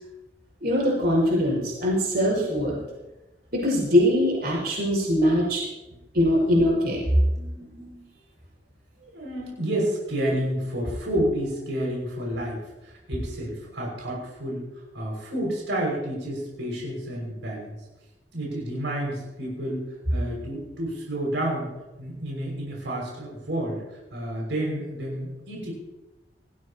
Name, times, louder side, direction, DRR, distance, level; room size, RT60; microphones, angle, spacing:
voice 1, 0.6-2.8 3.5-5.6 6.1-7.0, equal, 60° right, -3 dB, 6.4 m, -22 dB
voice 2, 2.3-2.9 6.5-6.7 7.3-8.1 9.1-14.7 14.9-17.8 18.3-21.7 22.0-23.8 24.1-25.7, right 1 dB, 90° right, -3 dB, 6.1 m, -30 dB
20.0 x 16.0 x 3.0 m, 1.0 s
head